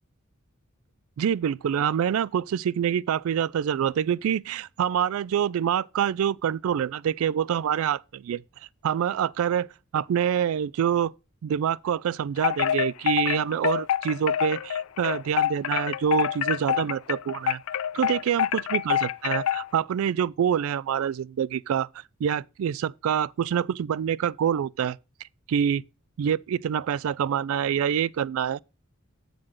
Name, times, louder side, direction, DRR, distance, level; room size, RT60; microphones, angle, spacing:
voice 1, 1.2-8.4 8.8-9.7 9.9-11.1 11.4-17.6 17.9-21.9 22.2-25.0 25.5-25.8 26.2-28.6, right 8 dB, 80° right, 0.3 m, -26 dB
Wind chime, 12.4-19.7, left 10 dB, 85° left, 0.4 m, -26 dB
8.9 x 3.9 x 6.3 m
head